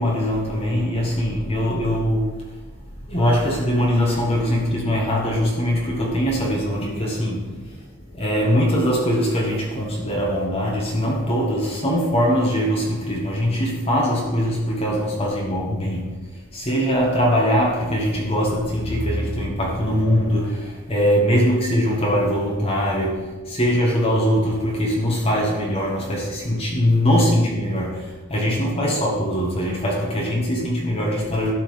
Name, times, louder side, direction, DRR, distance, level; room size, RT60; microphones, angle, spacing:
voice 1, 0.0-2.3 3.1-7.8 8.1-16.2 16.5-31.5, equal, 30° left, -3 dB, 1.7 m, -22 dB
12.5 x 4.3 x 7.2 m, 1.2 s
head